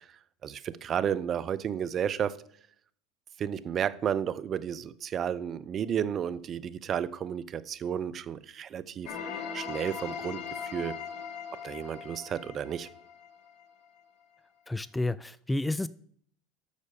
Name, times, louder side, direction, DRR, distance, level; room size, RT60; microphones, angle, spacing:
voice 1, 0.4-2.4 3.4-9.1 9.5-10.4 10.7-11.0 11.6-12.9, right 8 dB, 40° right, 0.6 m, -32 dB
sound 1, 9.1-13.9, left 6 dB, 55° left, 1.5 m, -40 dB
voice 2, 14.7-15.9, left 2 dB, 10° left, 0.3 m, -30 dB
8.3 x 6.6 x 6.8 m
hypercardioid pair, 85°, 0 cm